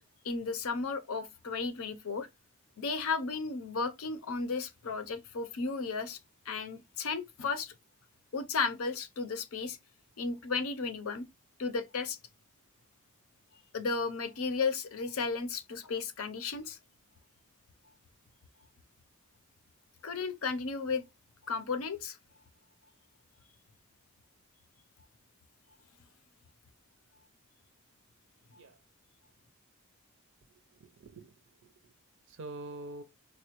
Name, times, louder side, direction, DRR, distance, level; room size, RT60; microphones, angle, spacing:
voice 1, 0.2-2.3 2.8-6.2 6.5-7.7 8.3-9.8 10.2-11.3 11.6-12.2 13.7-16.8 20.0-21.0 21.5-22.2, left 4 dB, 70° left, 0.6 m, -34 dB
voice 2, 30.5-31.3 31.8-31.9 32.3-33.0, right 2 dB, 55° right, 0.5 m, -45 dB
4.1 x 2.1 x 2.9 m
head